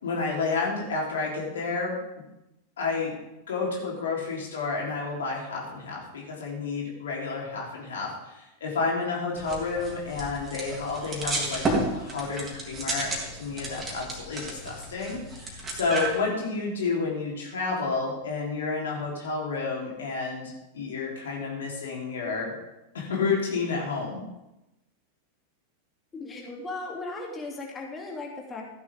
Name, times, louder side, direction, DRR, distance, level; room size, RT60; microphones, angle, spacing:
voice 1, 0.0-1.9 2.8-3.1 3.5-11.6 11.9-22.5 22.9-24.2, left 4 dB, 65° left, -2 dB, 3.5 m, -30 dB
sound 1, 9.4-16.2, right 2 dB, 20° right, 3.0 m, -33 dB
voice 2, 26.1-28.6, left 3 dB, 15° left, -1 dB, 2.8 m, -37 dB
15.0 x 11.0 x 3.6 m, 0.96 s
figure-of-eight pair, 90°, 0 cm